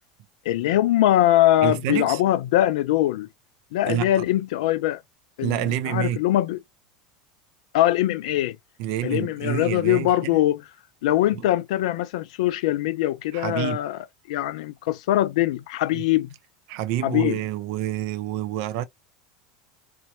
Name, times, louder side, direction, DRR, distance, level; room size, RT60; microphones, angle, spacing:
voice 1, 0.5-3.3 3.7-5.0 5.4-6.6 7.7-8.6 9.0-10.6 11.0-14.0 14.3-16.3 17.0-17.4, left 14 dB, 65° left, 0.4 m, -22 dB
voice 2, 1.6-2.2 3.8-4.2 5.4-6.2 8.8-10.3 11.3-11.4 13.3-13.8 15.9-16.0 16.7-18.8, right 12 dB, 60° right, 0.5 m, -28 dB
4.0 x 2.1 x 2.7 m
hypercardioid pair, 80°, 4 cm